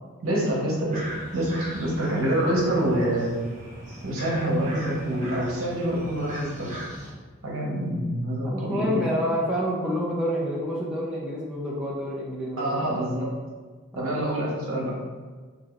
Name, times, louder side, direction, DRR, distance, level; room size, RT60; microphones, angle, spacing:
voice 1, 0.2-1.0 1.3-3.3 4.0-6.7 7.4-9.1 12.6-13.4 13.9-14.9, right 1 dB, 65° right, -4 dB, 1.0 m, -26 dB
sound 1, 0.9-7.1, equal, 35° right, 0.9 m, -40 dB
voice 2, 8.4-12.7 13.9-14.2, equal, 5° right, -6 dB, 0.5 m, -28 dB
4.8 x 2.8 x 2.5 m, 1.4 s
head